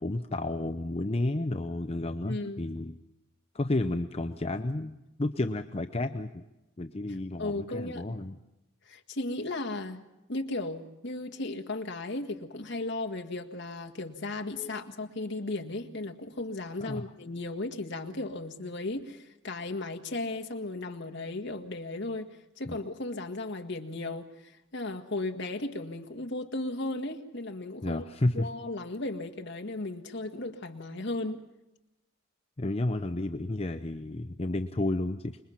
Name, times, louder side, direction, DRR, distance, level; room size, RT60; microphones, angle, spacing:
voice 1, 0.0-3.0 3.5-6.4 6.8-8.4 14.5-14.7 16.8-17.1 22.7-22.8 27.8-28.5 32.6-35.4, left 2 dB, 30° left, 7 dB, 0.7 m, -31 dB
voice 2, 2.3-2.6 7.4-8.2 8.9-10.0 10.3-22.3 22.6-28.0 28.3-31.4, left 2 dB, 60° left, 5 dB, 1.8 m, -35 dB
26.0 x 22.0 x 5.8 m, 0.94 s
head